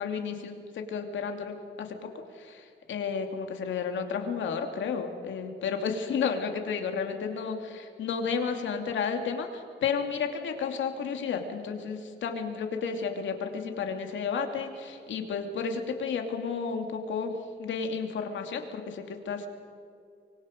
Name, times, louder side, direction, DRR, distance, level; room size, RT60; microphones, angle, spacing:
voice 1, 0.0-17.3 17.6-19.5, left 6 dB, 75° left, 5 dB, 2.7 m, -32 dB
24.5 x 24.5 x 5.3 m, 2.4 s
wide cardioid pair, 160°, 20 cm